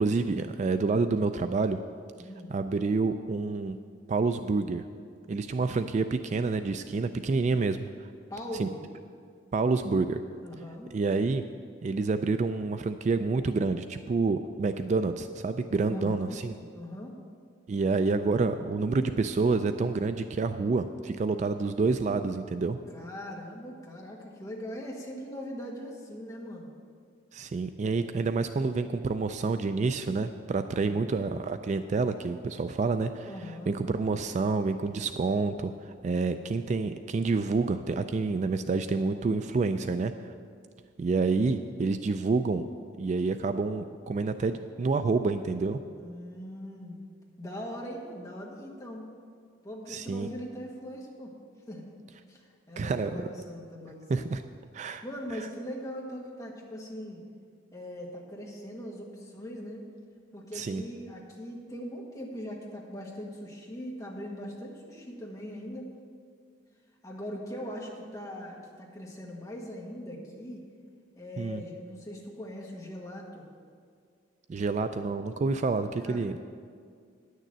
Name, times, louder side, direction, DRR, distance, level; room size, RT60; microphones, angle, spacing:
voice 1, 0.0-1.8 2.5-3.8 4.1-4.8 5.3-8.1 8.6-8.7 9.5-10.2 10.9-11.4 11.8-16.5 17.7-22.8 27.3-33.3 33.7-40.1 41.0-42.6 43.0-45.8 49.9-50.3 52.8-53.2 54.1-54.4 54.7-55.0 55.3-55.5 60.5-60.8 71.4-71.6 74.5-76.4, right 4 dB, 40° right, 10 dB, 0.3 m, -28 dB
voice 2, 2.2-2.5 8.3-8.8 10.4-10.9 15.9-17.2 22.9-26.7 33.3-33.8 46.0-47.0 47.4-49.1 49.6-51.3 51.7-51.9 52.2-54.3 55.0-57.2 57.7-59.8 60.3-65.9 67.0-70.6 71.1-73.5 76.0-76.3, equal, 20° left, -2 dB, 1.5 m, -40 dB
10.0 x 6.6 x 7.4 m, 2.1 s
head